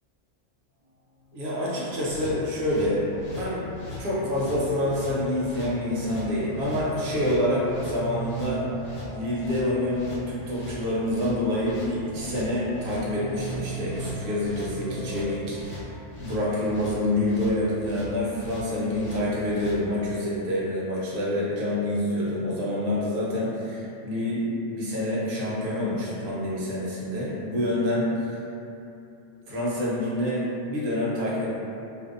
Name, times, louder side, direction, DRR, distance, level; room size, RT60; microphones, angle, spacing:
sound 1, 1.2-15.9, right 1 dB, 45° left, 0.5 m, -40 dB
voice 1, 1.3-3.7 4.0-8.6 9.1-15.9 16.2-28.3 29.5-31.5, left 1 dB, 55° right, -7 dB, 0.7 m, -27 dB
sound 2, 2.0-19.8, left 2 dB, 80° left, 1.0 m, -41 dB
2.5 x 2.1 x 2.4 m, 2.7 s
omnidirectional pair, 1.3 m